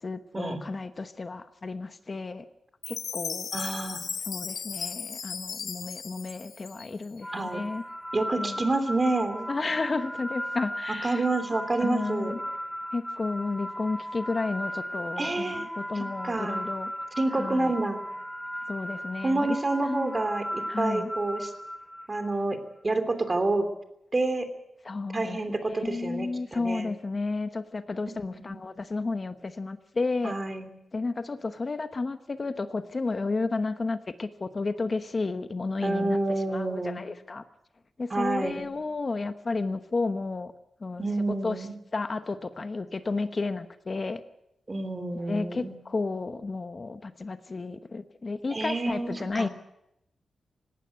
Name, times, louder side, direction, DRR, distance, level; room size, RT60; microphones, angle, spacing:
voice 1, 0.0-2.5 2.9-3.5 4.3-7.8 8.3-8.6 9.5-11.2 11.8-12.4 12.9-16.9 17.3-17.7 18.7-19.5 19.8-20.1 20.7-21.1 24.8-25.4 25.7-30.3 30.9-36.2 36.5-37.4 38.0-40.5 40.8-41.7 41.9-44.2 45.1-49.5, left 3 dB, 35° left, 10 dB, 1.0 m, -32 dB
Chime, 2.8-7.2, left 6 dB, 65° left, 1.0 m, -36 dB
voice 2, 3.5-4.0 7.3-7.6 8.1-9.5 11.0-12.3 15.2-15.7 15.9-16.6 17.2-18.0 19.2-21.5 22.1-22.6 22.8-23.7 24.1-24.5 25.1-26.9 28.3-28.5 30.2-30.7 35.8-37.0 38.1-38.6 41.0-41.7 44.7-45.8 48.5-49.5, right 2 dB, 25° right, 9 dB, 3.0 m, -28 dB
sound 1, 7.2-22.3, equal, 5° left, 1.0 m, -36 dB
19.0 x 17.5 x 9.4 m, 0.81 s
wide cardioid pair, 125°, 0 cm